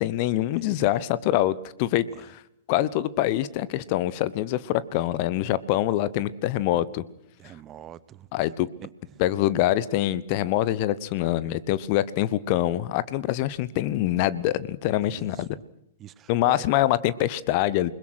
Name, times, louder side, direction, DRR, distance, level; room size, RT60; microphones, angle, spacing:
voice 1, 0.0-2.4 2.7-7.0 8.3-8.7 9.2-15.5 16.3-17.9, left 14 dB, 40° left, 18 dB, 1.0 m, -25 dB
voice 2, 7.4-8.3 8.8-9.2 15.1-15.6 16.0-16.8, right 11 dB, 25° right, 17 dB, 0.9 m, -45 dB
28.5 x 21.0 x 6.3 m, 0.74 s
figure-of-eight pair, 105°, 0 cm